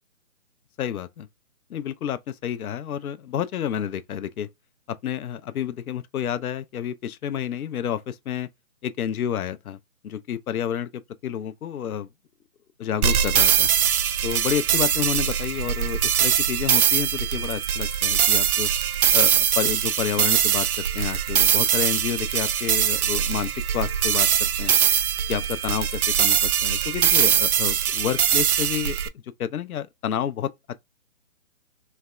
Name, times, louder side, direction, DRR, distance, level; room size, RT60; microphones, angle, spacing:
voice 1, 0.8-1.3 1.7-4.5 4.9-8.5 8.8-9.8 10.0-12.1 12.8-13.7 14.2-18.7 19.1-24.8 25.3-29.0 29.4-30.8, left 9 dB, 80° left, 0.5 m, -30 dB
sound 1, 13.0-29.1, right 9 dB, 85° right, 0.5 m, -22 dB
3.3 x 2.1 x 2.2 m
hypercardioid pair, 175°, 43 cm